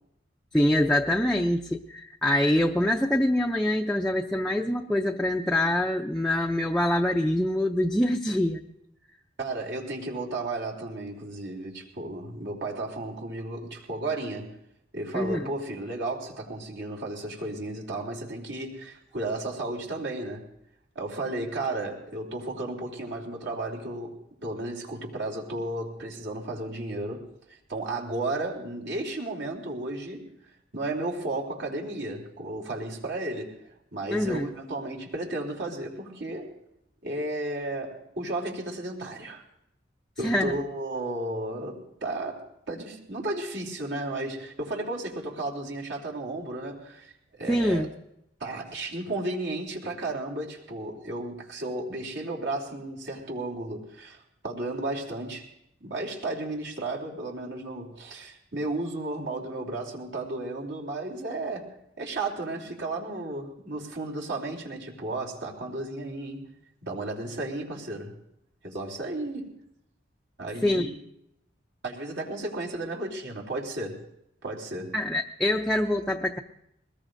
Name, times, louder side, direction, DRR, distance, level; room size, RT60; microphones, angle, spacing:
voice 1, 0.5-8.6 15.1-15.4 34.1-34.5 40.2-40.5 47.5-47.9 70.6-70.9 74.9-76.4, left 1 dB, ahead, 0.5 m, -25 dB
voice 2, 9.4-14.5 14.9-20.5 20.9-30.3 30.7-36.5 37.0-39.4 40.2-47.9 48.4-55.5 55.8-66.5 66.8-68.2 68.6-69.6 70.4-70.9 71.8-74.1 74.4-75.0, right 2 dB, 75° right, 3.3 m, -34 dB
22.5 x 20.0 x 2.6 m
head